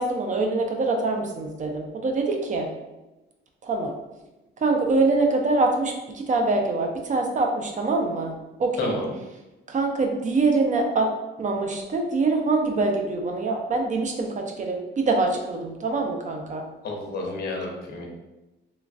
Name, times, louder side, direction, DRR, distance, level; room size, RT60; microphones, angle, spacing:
voice 1, 0.0-2.7 3.6-3.9 4.6-8.3 8.6-9.0 9.7-11.1 11.4-16.7, right 3 dB, 40° right, 2 dB, 0.4 m, -24 dB
voice 2, 8.8-9.1 16.8-18.1, left 2 dB, 50° left, 0 dB, 0.8 m, -30 dB
3.1 x 2.4 x 2.4 m, 1.0 s
cardioid pair, 90°, 20 cm